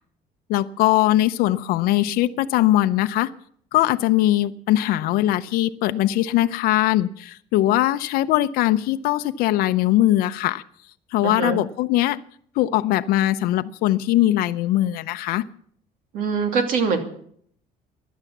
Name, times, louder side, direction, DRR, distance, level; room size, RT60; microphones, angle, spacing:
voice 1, 0.5-3.3 3.7-10.6 11.1-12.2 12.6-15.4, left 14 dB, 75° left, 10 dB, 0.6 m, -21 dB
voice 2, 11.2-11.6 16.1-17.0, right 5 dB, 65° right, 6 dB, 2.7 m, -23 dB
16.0 x 11.5 x 7.2 m, 0.63 s
cardioid pair, 160°, 15 cm